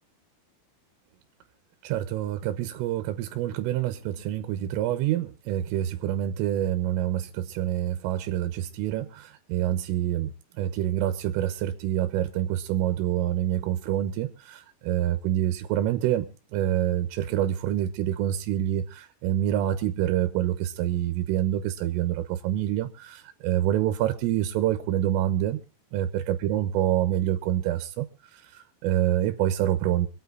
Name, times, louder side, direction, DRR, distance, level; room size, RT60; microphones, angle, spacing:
voice 1, 1.8-10.3 10.6-25.6 25.9-28.1 28.3-30.1, right 12 dB, 85° right, 3.7 m, -27 dB
25.0 x 8.9 x 4.0 m
omnidirectional pair, 5.8 m